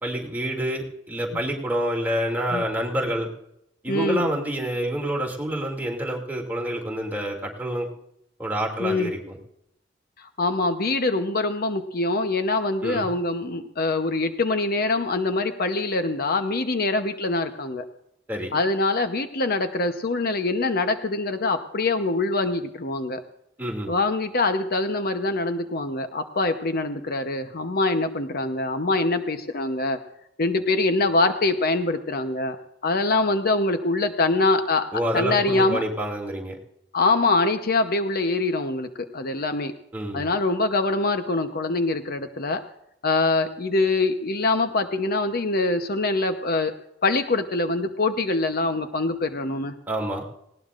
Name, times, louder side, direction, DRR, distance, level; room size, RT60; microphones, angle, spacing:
voice 1, 0.0-3.3 3.8-7.9 8.4-9.4 12.8-13.1 18.3-18.5 23.6-23.9 34.9-36.6 39.9-40.3 49.9-50.2, equal, 10° right, -1 dB, 2.6 m, -28 dB
voice 2, 3.9-4.3 8.8-9.1 10.2-17.9 18.5-23.2 23.9-30.0 30.4-32.6 32.8-34.9 35.1-35.8 36.9-39.7 40.1-42.6 43.0-46.7 47.0-49.7, left 2 dB, 55° left, 8 dB, 0.9 m, -24 dB
19.5 x 17.5 x 2.5 m, 0.78 s
head